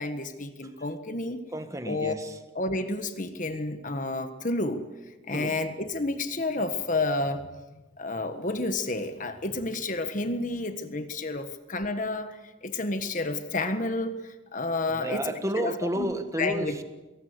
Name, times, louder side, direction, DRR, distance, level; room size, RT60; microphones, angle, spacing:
voice 1, 0.0-1.4 1.9-2.1 2.5-4.8 5.3-7.6 8.0-15.2 15.6-16.1 16.4-16.7, left 2 dB, 40° left, 9 dB, 1.5 m, -30 dB
voice 2, 1.5-2.4 5.3-5.6 14.9-16.8, right 1 dB, 15° right, 8 dB, 1.5 m, -31 dB
22.0 x 19.0 x 8.2 m, 1.1 s
head